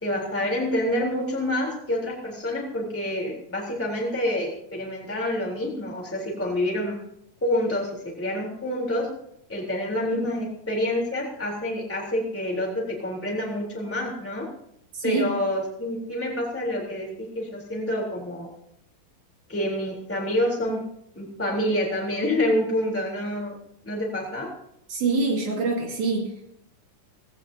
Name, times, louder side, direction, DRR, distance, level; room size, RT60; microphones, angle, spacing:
voice 1, 0.0-7.0 7.4-9.1 9.5-14.5 15.0-18.5 19.5-20.8 21.1-23.6 23.8-24.5, left 1 dB, 5° left, -3 dB, 3.4 m, -27 dB
voice 2, 14.9-15.3 24.9-26.5, right 3 dB, 65° right, -1 dB, 3.6 m, -25 dB
18.5 x 17.5 x 2.8 m, 0.75 s
omnidirectional pair, 3.9 m